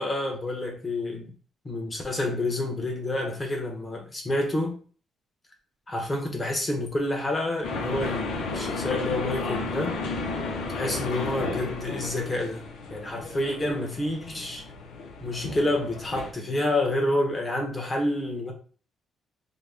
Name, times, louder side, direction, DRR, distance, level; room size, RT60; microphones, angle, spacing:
voice 1, 0.0-1.3 1.6-4.7 5.9-10.0 10.8-14.6 15.2-18.5, left 1 dB, 20° left, 1.0 m, -28 dB
sound 1, 7.6-16.3, left 3 dB, 90° left, 0.7 m, -33 dB
4.0 x 2.2 x 3.5 m
cardioid pair, 165°, 0 cm